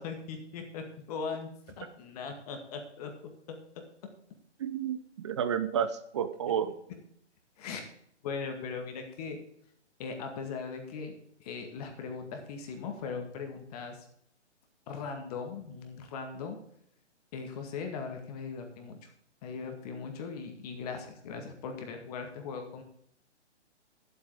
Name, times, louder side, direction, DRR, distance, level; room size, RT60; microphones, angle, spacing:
voice 1, 0.0-1.5 1.8-3.1 3.5-3.6 7.6-7.9 8.2-9.4 10.0-11.1 11.4-14.1 14.9-16.6 17.3-19.1 19.4-22.8, left 5 dB, 35° left, 4 dB, 2.0 m, -39 dB
voice 2, 4.6-6.7, right 8 dB, 25° right, 11 dB, 0.6 m, -31 dB
11.0 x 8.0 x 5.1 m, 0.70 s
figure-of-eight pair, 135°, 35 cm